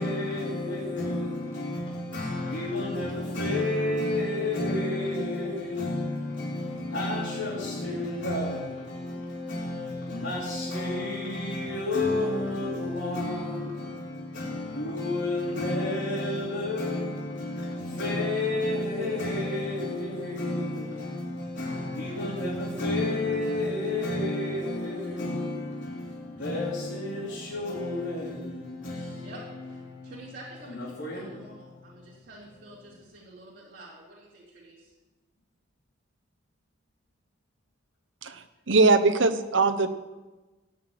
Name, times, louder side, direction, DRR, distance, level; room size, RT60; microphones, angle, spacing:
voice 1, 0.0-30.2 30.7-32.2, left 2 dB, 70° left, -7 dB, 3.3 m, -31 dB
voice 2, 29.2-34.9, right 1 dB, 50° right, -7 dB, 3.0 m, -48 dB
voice 3, 38.2-39.9, right 3 dB, 75° right, 11 dB, 0.9 m, -21 dB
15.5 x 5.9 x 8.9 m, 1.1 s
head